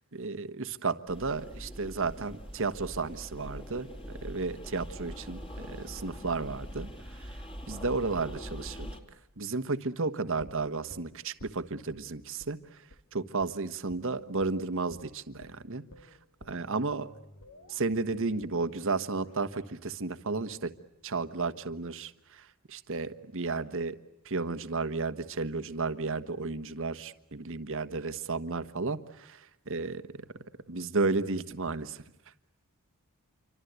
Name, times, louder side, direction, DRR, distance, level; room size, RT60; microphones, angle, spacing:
voice 1, 0.0-3.9 4.2-7.4 7.7-8.9 9.4-12.8 13.1-15.8 16.5-17.1 17.7-20.7 21.0-24.0 24.2-32.0, right 3 dB, 65° right, 11 dB, 1.4 m, -33 dB
sound 1, 1.1-9.0, equal, 25° left, 3.2 m, -43 dB
sound 2, 10.4-12.0 12.4-12.6 12.9-13.0 13.4-13.5 13.9-14.0 14.4-14.6 14.9-15.0 15.4-21.4 21.7-21.8, left 1 dB, 80° left, 2.5 m, -55 dB
28.0 x 25.0 x 8.2 m, 0.84 s
head